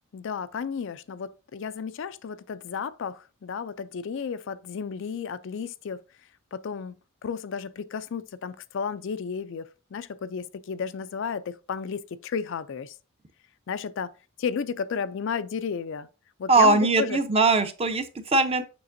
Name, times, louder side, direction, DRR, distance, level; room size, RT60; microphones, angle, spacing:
voice 1, 0.1-6.0 6.5-6.9 7.2-12.9 13.7-14.1 14.4-16.1 16.4-17.2, left 6 dB, 60° left, 0.4 m, -33 dB
voice 2, 16.5-18.6, right 3 dB, 30° right, 0.7 m, -21 dB
6.8 x 5.8 x 2.6 m
head